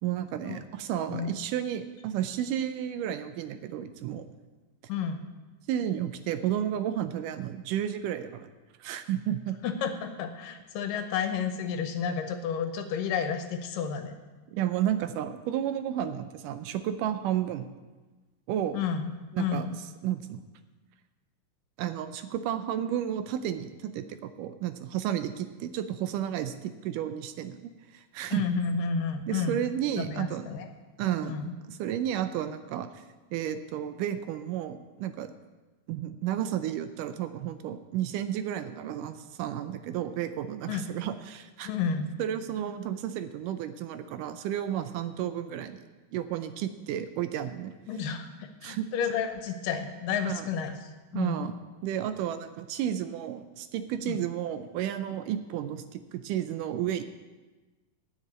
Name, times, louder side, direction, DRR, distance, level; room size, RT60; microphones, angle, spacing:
voice 1, 0.0-4.3 5.7-8.5 8.8-9.6 14.5-17.7 18.5-18.8 19.3-19.7 20.0-20.4 21.8-28.4 29.3-30.5 31.0-31.4 31.7-33.0 33.3-35.3 35.9-41.7 42.2-45.8 46.1-47.7 48.6-48.9 50.3-50.5 51.1-51.6 51.8-57.0, right 10 dB, 80° right, 10 dB, 2.1 m, -32 dB
voice 2, 4.9-5.2 9.6-14.1 18.7-19.1 19.4-19.7 28.3-29.6 30.0-30.7 31.2-31.5 40.7-40.8 41.6-42.1 47.9-50.7 51.1-51.5 54.1-54.2, left 6 dB, 80° left, 7 dB, 2.5 m, -31 dB
9.6 x 7.5 x 8.5 m, 1.2 s
omnidirectional pair, 4.0 m